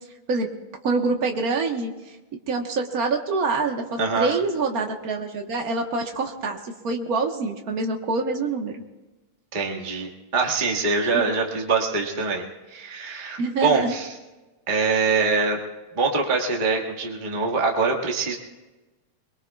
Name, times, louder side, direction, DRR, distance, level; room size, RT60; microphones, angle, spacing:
voice 1, 0.8-1.9 2.5-8.8 13.4-14.0, right 3 dB, 50° right, 2 dB, 1.1 m, -25 dB
voice 2, 4.0-4.3 9.5-12.4 12.7-14.1 14.7-15.6 15.9-18.4, right 4 dB, 20° right, -1 dB, 1.4 m, -24 dB
23.5 x 22.5 x 2.4 m, 1.1 s
omnidirectional pair, 3.4 m